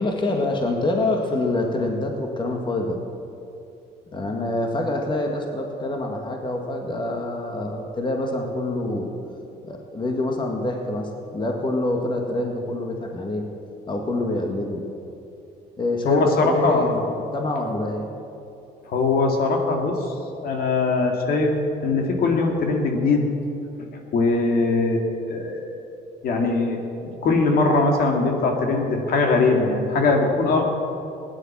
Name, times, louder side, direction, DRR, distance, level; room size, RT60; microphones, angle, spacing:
voice 1, 0.0-3.0 4.1-9.1 9.6-13.4 13.9-14.8 15.8-18.1, left 2 dB, 30° left, 2 dB, 1.9 m, -26 dB
voice 2, 16.1-17.0 18.9-20.1 20.4-21.5 21.8-23.3 24.1-25.7 26.2-30.6, left 3 dB, 60° left, 2 dB, 2.2 m, -21 dB
16.5 x 10.5 x 7.5 m, 2.8 s
cardioid pair, 110°, 17 cm